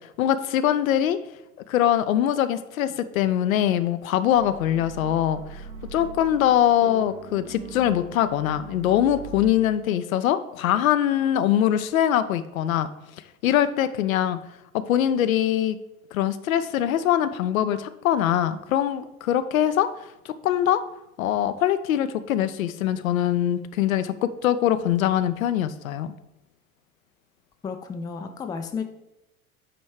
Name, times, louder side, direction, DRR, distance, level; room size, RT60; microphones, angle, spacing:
voice 1, 0.2-1.2 1.7-5.6 5.9-12.9 13.4-14.4 14.9-15.8 16.1-19.9 20.2-20.8 21.2-26.1, left 11 dB, 70° left, 12 dB, 0.6 m, -23 dB
sound 1, 4.3-9.5, right 6 dB, 60° right, 1.3 m, -41 dB
voice 2, 27.6-28.8, left 5 dB, 10° left, 6 dB, 0.4 m, -32 dB
8.8 x 3.1 x 4.7 m, 0.92 s
figure-of-eight pair, 80°, 43 cm